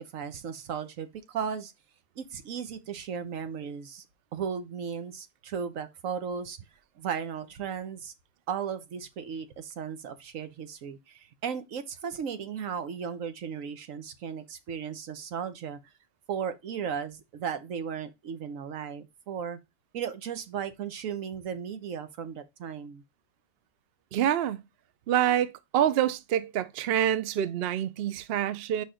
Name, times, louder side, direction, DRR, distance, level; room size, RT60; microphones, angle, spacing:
voice 1, 0.0-1.7 2.2-4.0 4.3-6.6 7.0-8.1 8.5-15.8 16.3-19.6 19.9-23.0, right 7 dB, 85° right, 1.3 m, -36 dB
voice 2, 24.1-24.6 25.1-28.8, right 10 dB, 60° right, 0.7 m, -26 dB
5.3 x 4.3 x 4.9 m
omnidirectional pair, 1.3 m